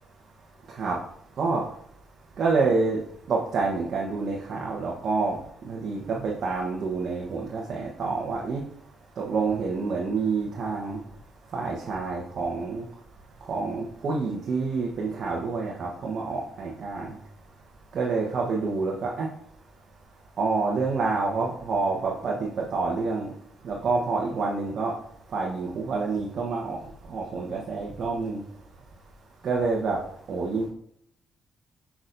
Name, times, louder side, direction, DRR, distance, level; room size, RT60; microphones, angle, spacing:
voice 1, 2.4-3.0 3.3-5.4 5.6-8.6 9.2-11.0 11.5-12.8 13.5-17.1 17.9-19.3 20.4-23.3 23.6-24.9 25.3-26.8 27.1-28.4 29.4-30.0 30.3-30.7, right 4 dB, 60° right, -2 dB, 1.1 m, -27 dB
6.5 x 5.8 x 2.6 m, 0.68 s
cardioid pair, 75°, 0 cm